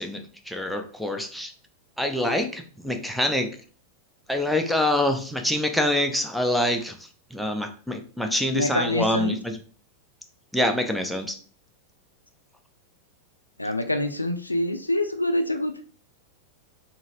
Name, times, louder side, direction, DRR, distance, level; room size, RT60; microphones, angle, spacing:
voice 1, 0.0-1.5 2.0-3.6 4.3-9.6 10.5-11.4, left 1 dB, ahead, 5 dB, 0.4 m, -26 dB
voice 2, 8.5-9.4 13.6-15.7, left 1 dB, 85° left, 7 dB, 0.3 m, -25 dB
3.8 x 2.0 x 2.5 m, 0.41 s
figure-of-eight pair, 90°, 0 cm